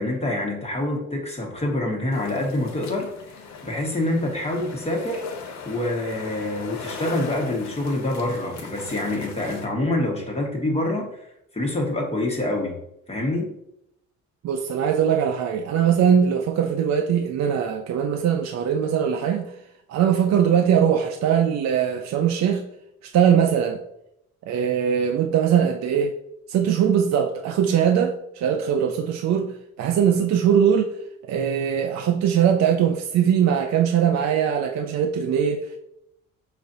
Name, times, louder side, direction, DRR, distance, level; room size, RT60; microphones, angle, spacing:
voice 1, 0.0-3.1 3.6-5.2 5.6-11.1 11.5-12.8 13.1-13.5, left 1 dB, 20° left, 1.2 m, -26 dB
sound 1, 2.1-9.7, left 5 dB, 65° left, 0.9 m, -38 dB
voice 2, 14.4-19.5 19.9-22.7 23.0-23.8 24.5-26.2 26.5-30.9 31.3-35.8, right 8 dB, 60° right, 0.5 m, -21 dB
4.9 x 4.0 x 2.6 m
cardioid pair, 90°, 30 cm